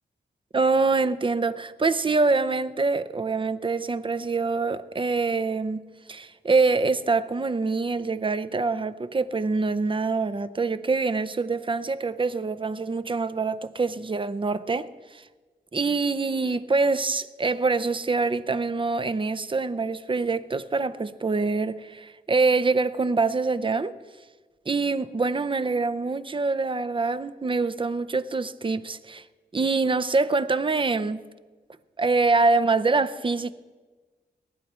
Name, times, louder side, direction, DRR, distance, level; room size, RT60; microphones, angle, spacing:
voice 1, 0.5-5.8 6.1-15.2 15.7-23.9 24.7-29.2 29.5-31.2 32.0-33.5, right 3 dB, 30° right, 0.5 m, -25 dB
19.0 x 11.0 x 4.3 m
wide cardioid pair, 110°, 18 cm